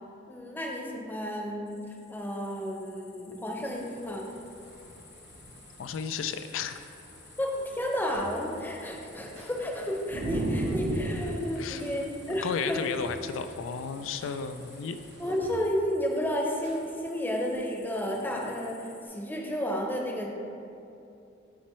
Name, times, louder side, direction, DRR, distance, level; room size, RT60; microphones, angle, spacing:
voice 1, 0.3-4.3 7.4-12.8 15.2-20.3, equal, 10° left, -1 dB, 0.7 m, -32 dB
sound 1, 1.7-19.1, left 5 dB, 60° left, 1.1 m, -55 dB
sound 2, 3.6-15.4, right 1 dB, 60° right, 0.7 m, -38 dB
voice 2, 5.8-6.8 11.6-11.8 12.4-15.0, left 6 dB, 80° left, 9 dB, 0.3 m, -33 dB
sound 3, 8.1-8.5 9.3-9.5 10.3-10.4 10.6-10.9 11.8-11.9 12.7-12.8 13.0-13.3 14.2-14.4 15.1-15.2 15.4-15.8 16.6-16.8 17.5-17.6, equal, 80° right, 1.4 m, -49 dB
8.8 x 4.2 x 3.1 m, 2.7 s
head